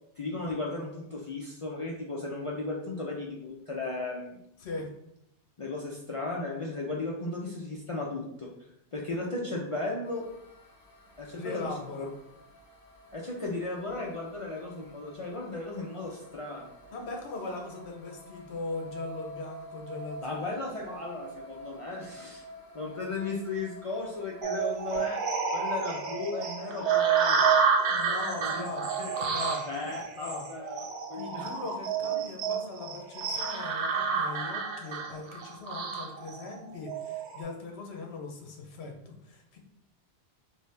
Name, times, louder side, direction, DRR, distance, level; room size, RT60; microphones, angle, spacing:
voice 1, 0.2-4.4 5.6-8.5 8.9-10.2 11.2-11.7 13.1-16.7 20.2-22.4 22.7-25.2 25.5-27.4 28.4-28.7 29.7-30.8 31.1-31.5 32.2-32.3, left 2 dB, 55° left, -3 dB, 0.3 m, -35 dB
sound 1, 10.0-25.0, right 1 dB, 40° left, 1.4 m, -49 dB
voice 2, 11.3-12.1 16.9-20.6 27.9-28.9 29.2-29.7 30.1-30.5 31.1-39.6, left 3 dB, 75° left, 1 dB, 1.0 m, -40 dB
sound 2, 24.4-37.4, right 6 dB, 90° right, 0.9 m, -29 dB
3.2 x 2.7 x 3.2 m, 0.80 s
omnidirectional pair, 1.1 m